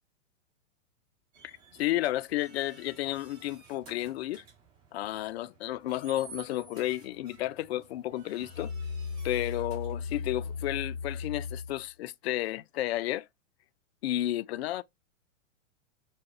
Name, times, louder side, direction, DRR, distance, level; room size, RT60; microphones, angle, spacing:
sound 1, 1.3-10.8, right 4 dB, 35° right, 1.9 m, -54 dB
voice 1, 1.4-4.4 4.9-8.7 9.2-13.3 14.0-14.8, left 14 dB, 55° left, 0.4 m, -32 dB
Musical instrument, 8.3-11.9, left 5 dB, 90° right, 1.0 m, -36 dB
4.8 x 2.3 x 2.3 m
hypercardioid pair, 110°, 38 cm